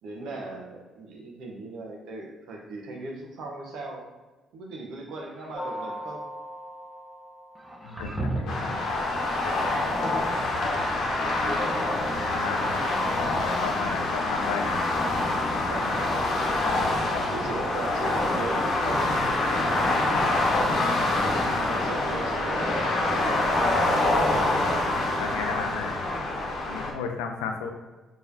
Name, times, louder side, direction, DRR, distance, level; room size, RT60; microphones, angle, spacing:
voice 1, 0.0-4.1 4.5-6.3 9.7-10.3 12.8-13.0 15.7-16.2 17.3-19.8 21.5-24.0 24.4-25.1, right 2 dB, 75° right, 0 dB, 0.9 m, -39 dB
sound 1, 5.3-6.1 7.6-8.8, right 1 dB, 15° right, 0.7 m, -34 dB
sound 2, 5.5-8.5 11.4-14.5 18.2-21.4 23.9-25.4, left 1 dB, 20° left, 1.0 m, -40 dB
voice 2, 7.8-8.8 10.6-10.8 12.3-12.7 13.0-14.8 17.0-17.3 18.5-18.7 20.7-21.0 21.5-21.8 24.4-24.7 25.2-26.0 26.7-27.7, left 5 dB, 90° left, 4 dB, 0.5 m, -34 dB
sound 3, 8.5-26.9, left 2 dB, 65° left, 0.9 m, -26 dB
4.8 x 3.1 x 2.7 m, 1.2 s
supercardioid pair, 60°, 0 cm